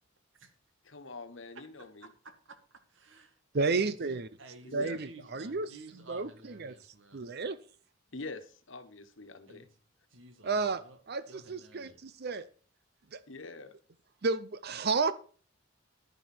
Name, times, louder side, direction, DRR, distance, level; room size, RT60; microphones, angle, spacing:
voice 1, 0.8-2.1 4.6-5.0 8.1-9.7 13.3-13.7, left 3 dB, 65° left, 10 dB, 1.4 m, -44 dB
voice 2, 1.5-7.3 9.5-9.7 10.1-11.0 11.3-12.0, right 2 dB, 65° right, 8 dB, 2.1 m, -53 dB
voice 3, 3.5-4.3 4.7-5.7 6.1-6.7 7.1-7.6 10.4-10.8 11.1-12.5 13.1-13.2 14.2-15.1, right 4 dB, 50° right, 14 dB, 0.6 m, -31 dB
11.5 x 9.6 x 4.4 m, 0.40 s
head